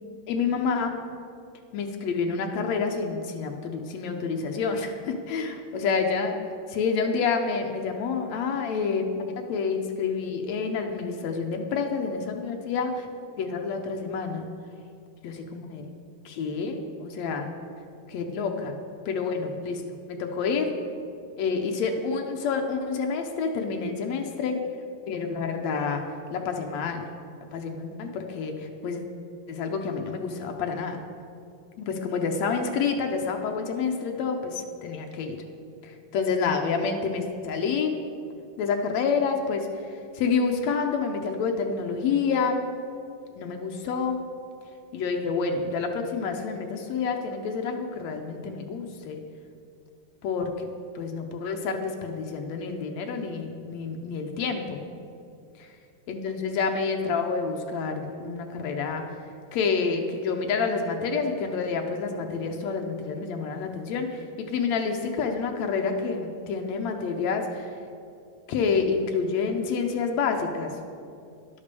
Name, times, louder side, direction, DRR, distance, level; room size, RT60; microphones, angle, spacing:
voice 1, 0.3-1.0 1.7-6.3 6.7-13.1 13.4-14.5 15.2-15.9 16.3-17.5 18.1-18.8 19.1-19.8 20.1-20.7 21.4-24.6 25.1-26.0 26.3-27.1 27.5-29.0 29.5-31.0 31.8-35.4 35.8-37.9 38.6-42.6 43.4-44.2 44.9-49.2 50.2-50.7 51.0-54.8 56.1-59.2 59.5-67.7 68.5-70.8, left 5 dB, 70° left, 4 dB, 1.8 m, -28 dB
11.0 x 8.8 x 6.8 m, 2.5 s
omnidirectional pair, 3.8 m